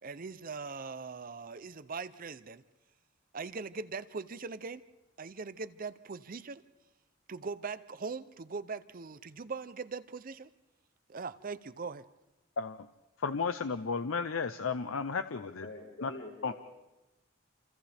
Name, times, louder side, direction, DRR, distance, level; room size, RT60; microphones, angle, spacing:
voice 1, 0.0-2.6 3.3-4.8 5.2-6.6 7.3-10.5 11.1-12.0, right 4 dB, 45° right, 13 dB, 0.6 m, -41 dB
voice 2, 12.6-12.9 13.2-15.7 16.0-16.1 16.4-16.5, left 5 dB, 90° left, 10 dB, 0.7 m, -33 dB
voice 3, 15.6-16.6, left 2 dB, 70° left, -2 dB, 8.0 m, -44 dB
28.5 x 27.5 x 3.5 m, 1.0 s
head